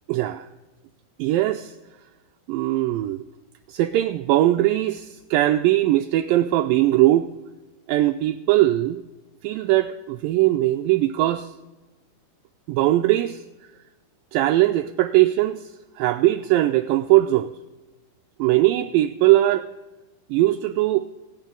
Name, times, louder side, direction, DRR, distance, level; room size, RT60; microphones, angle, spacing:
voice 1, 0.1-0.5 1.2-1.8 2.5-3.2 3.7-7.3 7.9-9.0 9.4-11.5 12.7-13.4 14.3-15.7 16.0-17.5 18.4-19.7 20.3-21.0, right 15 dB, 85° right, 7 dB, 2.0 m, -20 dB
25.0 x 9.1 x 3.8 m, 1.1 s
omnidirectional pair, 4.5 m